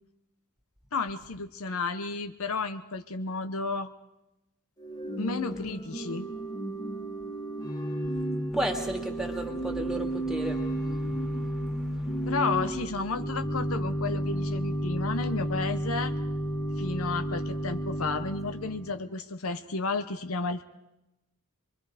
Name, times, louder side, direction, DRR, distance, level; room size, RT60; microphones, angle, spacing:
voice 1, 0.9-3.9 5.2-6.3 12.3-16.1 16.8-20.6, left 4 dB, 70° left, 9 dB, 1.0 m, -32 dB
Organ / Church bell, 4.8-19.0, right 1 dB, 20° left, 1.8 m, -32 dB
voice 2, 8.5-12.3, equal, ahead, 3 dB, 2.3 m, -35 dB
24.5 x 23.5 x 5.0 m, 0.90 s
head